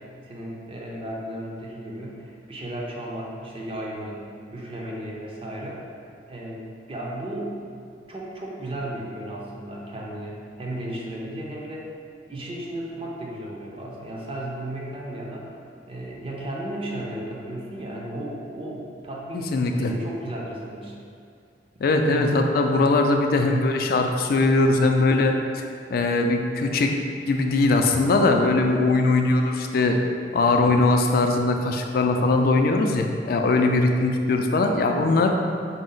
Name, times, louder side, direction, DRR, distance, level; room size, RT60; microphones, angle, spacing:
voice 1, 0.3-4.2 4.5-5.8 6.3-7.5 8.0-11.9 12.3-15.5 15.9-20.9, right 1 dB, 30° right, -3 dB, 0.6 m, -34 dB
voice 2, 19.5-19.9 21.8-25.6 25.9-26.9 27.3-30.0 30.3-35.4, left 2 dB, 55° left, 4 dB, 0.3 m, -21 dB
5.1 x 2.0 x 3.8 m, 2.3 s
head